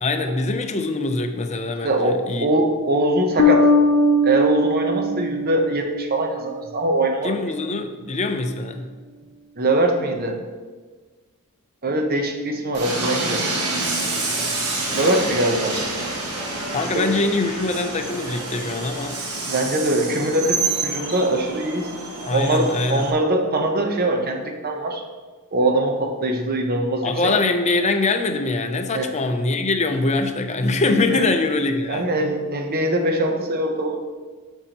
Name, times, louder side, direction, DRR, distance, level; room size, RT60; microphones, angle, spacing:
voice 1, 0.0-2.5 7.2-8.9 16.7-19.2 22.3-23.1 27.0-32.1, left 3 dB, 30° left, 6 dB, 0.5 m, -23 dB
voice 2, 1.8-3.6 4.2-7.3 9.6-10.4 11.8-13.5 14.9-15.7 16.9-17.1 19.5-21.9 22.3-25.0 25.5-27.1 28.9-29.1 31.1-31.3 31.9-34.0, right 1 dB, 40° right, 3 dB, 0.8 m, -22 dB
Bass guitar, 3.4-6.4, left 2 dB, 60° left, 0.7 m, -19 dB
Train, 12.7-23.1, right 3 dB, 85° right, 1.6 m, -28 dB
12.5 x 5.5 x 2.9 m, 1.4 s
head